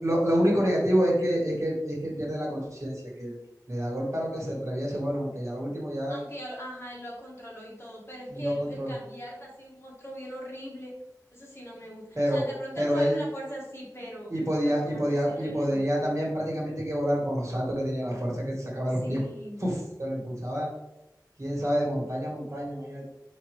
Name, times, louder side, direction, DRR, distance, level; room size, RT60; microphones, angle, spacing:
voice 1, 0.0-3.3 3.7-6.2 8.3-8.9 12.1-12.4 12.8-13.2 14.3-19.2 19.6-20.7 21.4-23.1, equal, 45° right, -4 dB, 1.6 m, -28 dB
voice 2, 6.1-10.9 11.3-14.3 14.6-15.8 19.0-19.7, equal, 35° left, -4 dB, 1.5 m, -40 dB
5.2 x 2.8 x 3.2 m, 0.89 s
wide cardioid pair, 40°, 7 cm